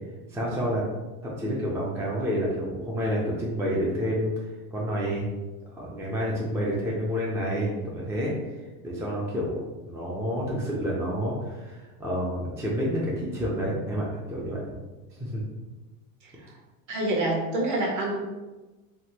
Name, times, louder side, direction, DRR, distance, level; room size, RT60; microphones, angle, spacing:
voice 1, 0.3-0.8 1.2-4.3 4.7-5.3 5.7-8.3 8.8-14.6 15.2-15.4, equal, 5° right, -5 dB, 0.4 m, -29 dB
voice 2, 16.9-18.2, right 1 dB, 40° right, -1 dB, 1.0 m, -27 dB
3.5 x 2.1 x 2.8 m, 1.2 s
supercardioid pair, 105°, 46 cm